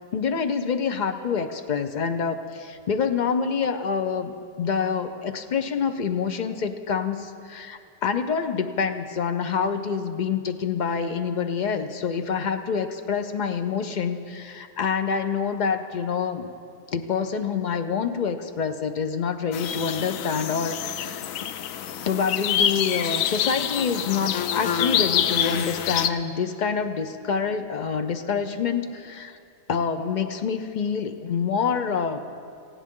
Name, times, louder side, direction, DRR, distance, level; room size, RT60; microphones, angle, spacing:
voice 1, 0.1-16.5 16.9-21.2 22.1-29.4 29.7-32.2, left 6 dB, 50° left, 8 dB, 0.6 m, -27 dB
sound 1, 19.5-26.1, left 9 dB, 90° left, 1.0 m, -26 dB
18.5 x 16.0 x 3.7 m, 2.4 s
omnidirectional pair, 1.4 m